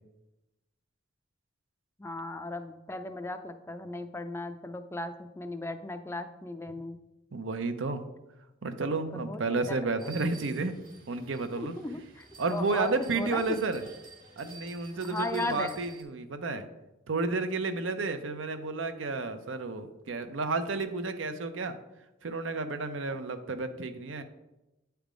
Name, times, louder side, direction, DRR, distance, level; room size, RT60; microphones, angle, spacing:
voice 1, 2.0-7.0 9.1-9.8 11.6-13.6 15.0-15.8, left 2 dB, 15° left, 9 dB, 0.3 m, -37 dB
voice 2, 7.3-8.1 8.6-10.7 11.1-11.7 12.4-13.8 14.4-16.7 17.1-21.8 22.2-24.2, right 3 dB, 85° right, 9 dB, 0.7 m, -31 dB
sound 1, 10.0-16.0, right 3 dB, 45° right, 1.4 m, -51 dB
9.1 x 3.4 x 5.0 m, 0.99 s
head